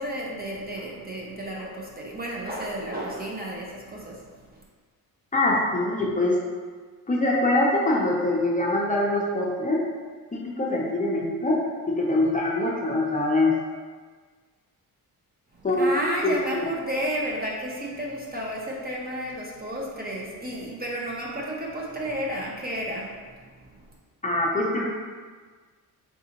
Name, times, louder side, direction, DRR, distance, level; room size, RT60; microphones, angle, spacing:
voice 1, 0.0-4.6 15.5-23.9, equal, 25° right, -3 dB, 0.6 m, -32 dB
voice 2, 5.3-6.4 7.1-9.8 10.3-11.6 11.9-13.6 15.6-16.3 24.2-24.8, left 2 dB, 20° left, -3 dB, 0.6 m, -23 dB
3.9 x 3.7 x 2.8 m, 1.5 s
cardioid pair, 125°, 36 cm